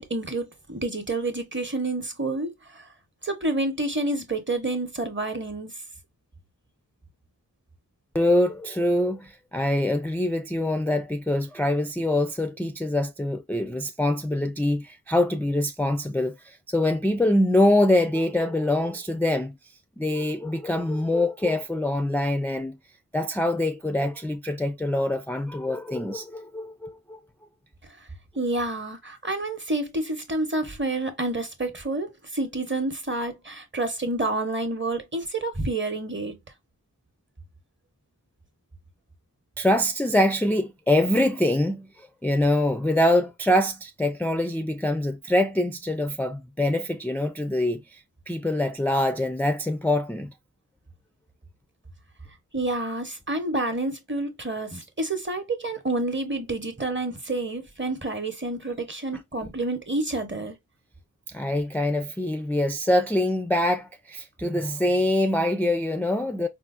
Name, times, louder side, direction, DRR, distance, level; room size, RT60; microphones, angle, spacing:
voice 1, 0.0-2.9 3.2-5.7 28.4-36.4 52.5-60.6, right 2 dB, 30° right, 0.8 m, -29 dB
voice 2, 8.1-19.6 20.0-22.8 23.1-27.2 39.6-50.3 61.3-66.5, left 1 dB, 5° left, 0.3 m, -24 dB
4.4 x 2.0 x 2.4 m
wide cardioid pair, 40°, 36 cm